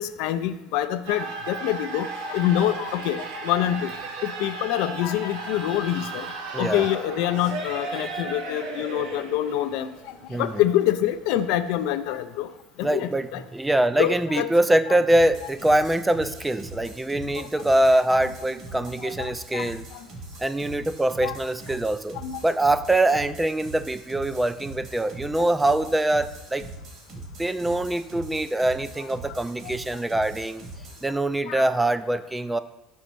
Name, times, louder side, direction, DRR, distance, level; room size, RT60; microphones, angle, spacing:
voice 1, 0.0-3.9 4.2-6.3 6.6-9.9 10.4-12.5 12.8-13.4 14.0-14.5 17.4-17.5 19.0-19.7 21.2-21.4 22.2-22.4 25.4-25.5 29.6-29.7 31.5-31.7, left 12 dB, 70° left, 10 dB, 0.3 m, -26 dB
sound 1, 1.0-12.0, right 3 dB, 75° right, 0.8 m, -36 dB
voice 2, 6.5-6.9 7.9-8.2 10.3-10.6 12.8-19.9 20.4-22.2 22.4-26.7 27.4-30.6 31.0-32.6, right 1 dB, 10° right, 12 dB, 0.3 m, -23 dB
sound 2, 15.1-31.1, right 2 dB, 55° right, 1.3 m, -42 dB
5.4 x 4.0 x 4.6 m, 0.96 s
hypercardioid pair, 85°, 0 cm